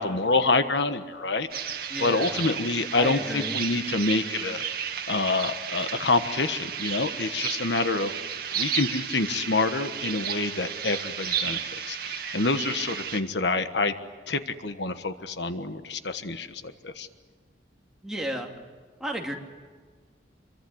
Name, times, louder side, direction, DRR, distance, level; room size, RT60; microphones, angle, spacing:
voice 1, 0.0-1.5 2.0-4.7 5.1-8.1 8.5-13.9 14.3-17.1, left 3 dB, 70° left, 9 dB, 1.4 m, -27 dB
sound 1, 1.5-13.2, right 8 dB, 55° right, 2.2 m, -33 dB
voice 2, 1.9-2.4 2.9-3.6 18.0-18.5 19.0-19.3, equal, 5° right, 0 dB, 2.6 m, -32 dB
27.0 x 23.5 x 8.0 m, 1.6 s
head